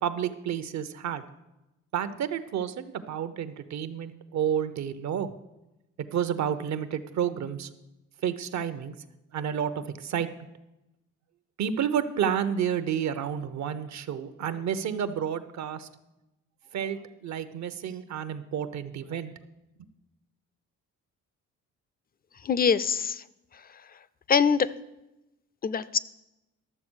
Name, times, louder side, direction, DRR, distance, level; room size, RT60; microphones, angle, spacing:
voice 1, 0.0-1.2 1.9-5.3 6.0-7.7 8.2-9.0 9.3-10.5 11.6-15.9 16.7-19.3, right 8 dB, 65° right, 11 dB, 0.9 m, -30 dB
voice 2, 22.4-23.2 24.3-24.7 25.6-26.0, left 6 dB, 30° left, 17 dB, 0.5 m, -23 dB
12.0 x 7.1 x 6.3 m, 0.96 s
cardioid pair, 90°, 30 cm